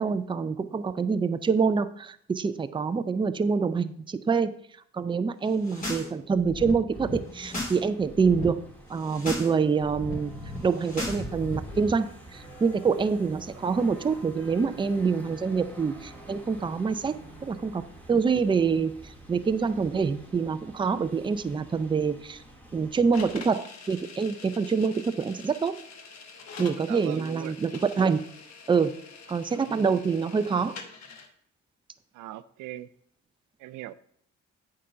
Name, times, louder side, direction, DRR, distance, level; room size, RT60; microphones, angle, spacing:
voice 1, 0.0-4.5 4.9-8.6 8.9-10.3 10.6-17.8 18.1-22.4 22.7-25.8 26.6-28.2 28.7-28.9 29.3-30.8, right 5 dB, 15° right, 0.4 m, -26 dB
sound 1, 5.5-6.1 6.3-7.8 8.1-8.4 8.9-9.5 9.8-11.8, left 1 dB, 25° left, 3.0 m, -36 dB
sound 2, 6.9-23.4, right 1 dB, 5° left, 2.0 m, -49 dB
sound 3, 23.1-31.3, left 5 dB, 60° left, 1.2 m, -46 dB
voice 2, 26.9-27.5 29.5-29.9 32.1-32.9 33.6-33.9, right 14 dB, 85° right, 0.5 m, -40 dB
8.5 x 3.8 x 5.6 m
cardioid pair, 90°, 30 cm